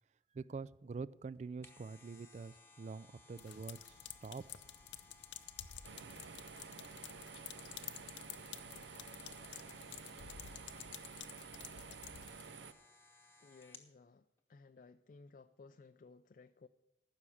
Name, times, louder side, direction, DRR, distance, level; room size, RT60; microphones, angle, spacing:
voice 1, 0.3-4.4, right 4 dB, 40° right, 18 dB, 0.3 m, -46 dB
sound 1, 1.3-13.9 14.4-14.5, left 3 dB, 15° left, 1.0 m, -63 dB
sound 2, 3.4-12.5, left 10 dB, 85° left, 0.7 m, -51 dB
sound 3, 5.8-12.7, right 5 dB, 75° right, 0.6 m, -52 dB
voice 2, 13.4-16.7, left 4 dB, 45° left, 8 dB, 0.4 m, -59 dB
14.5 x 6.3 x 7.0 m, 1.0 s
head